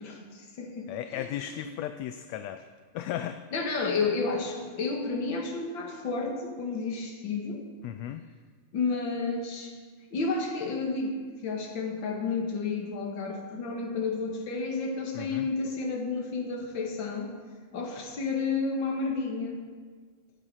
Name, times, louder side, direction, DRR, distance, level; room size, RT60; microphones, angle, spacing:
voice 1, 0.0-1.6 3.5-7.6 8.7-9.7 10.1-11.2 11.4-17.3 17.7-19.6, left 4 dB, 45° left, 1 dB, 2.1 m, -31 dB
voice 2, 0.9-2.7 2.9-3.4 7.8-8.2 15.1-15.5, left 11 dB, 80° left, 9 dB, 1.6 m, -35 dB
16.0 x 8.1 x 5.6 m, 1.5 s
omnidirectional pair, 3.4 m